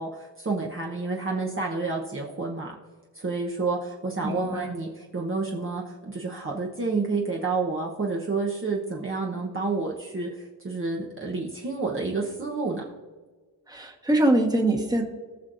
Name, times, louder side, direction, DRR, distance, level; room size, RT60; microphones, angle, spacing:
voice 1, 0.0-2.7 3.1-12.8, right 3 dB, 30° right, -3 dB, 1.0 m, -29 dB
voice 2, 4.2-4.7 13.7-15.0, right 1 dB, 10° right, 2 dB, 1.3 m, -23 dB
19.0 x 6.3 x 2.6 m, 1.4 s
wide cardioid pair, 115°, 42 cm